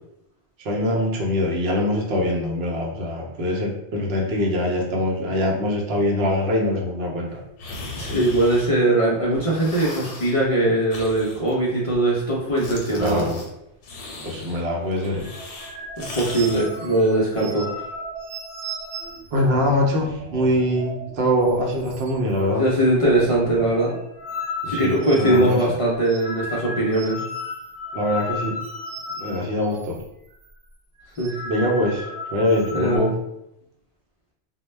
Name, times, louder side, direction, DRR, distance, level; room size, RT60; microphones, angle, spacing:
voice 1, 0.6-7.4 8.0-8.2 13.0-13.4 14.2-15.3 19.3-22.6 24.6-25.6 27.9-28.5 29.1-30.0 31.4-33.2, left 1 dB, 70° right, -1 dB, 0.8 m, -23 dB
sound 1, 7.6-9.0 9.3-10.4 10.9-12.3 12.6-13.5 13.8-16.6, left 3 dB, 90° left, 0.9 m, -37 dB
voice 2, 7.9-13.3 16.0-17.7 22.6-23.9 24.7-27.2 31.2-31.4 32.7-33.0, right 1 dB, 55° left, -5 dB, 0.3 m, -21 dB
sound 2, 15.2-21.2 21.4-21.6 21.9-22.4 22.7-30.0 30.3-30.5 31.0-33.0, left 2 dB, 90° right, 0.9 m, -35 dB
2.1 x 2.1 x 3.1 m, 0.81 s
omnidirectional pair, 1.2 m